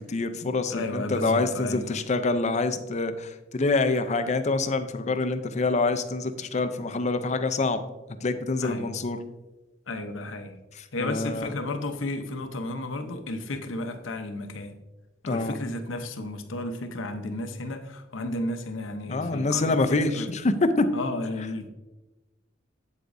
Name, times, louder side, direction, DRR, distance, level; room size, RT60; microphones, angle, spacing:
voice 1, 0.0-7.8 8.2-9.2 11.0-11.5 15.3-15.6 19.1-20.9, left 3 dB, 35° left, 9 dB, 0.5 m, -26 dB
voice 2, 0.7-2.0 8.6-8.9 9.9-10.5 10.9-14.7 15.2-20.3 20.9-21.7, left 2 dB, 80° left, 7 dB, 0.8 m, -33 dB
8.3 x 8.0 x 2.6 m, 1.1 s
head